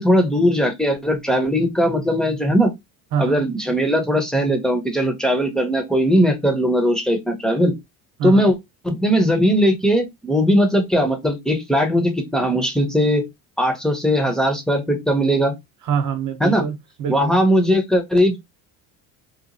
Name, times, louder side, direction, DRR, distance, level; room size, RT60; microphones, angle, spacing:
voice 1, 0.0-2.7 3.2-7.7 8.2-8.5 8.8-13.3 13.6-15.5 16.4-16.6 17.1-18.4, equal, ahead, 0.7 m, -19 dB
voice 2, 3.1-3.4 8.2-8.5 15.8-17.4, right 7 dB, 50° right, 0.8 m, -25 dB
2.9 x 2.3 x 2.5 m
cardioid pair, 110°, 39 cm